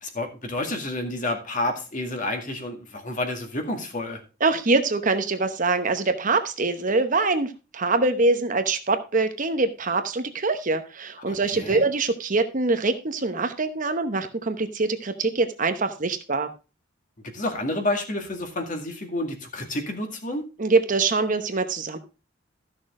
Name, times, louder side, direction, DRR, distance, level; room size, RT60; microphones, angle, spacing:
voice 1, 0.0-4.2 11.3-11.8 17.3-20.5, left 1 dB, 40° left, 4 dB, 2.1 m, -29 dB
voice 2, 4.4-16.5 20.6-22.0, right 3 dB, 40° right, 8 dB, 0.9 m, -24 dB
13.5 x 6.5 x 3.7 m, 0.31 s
head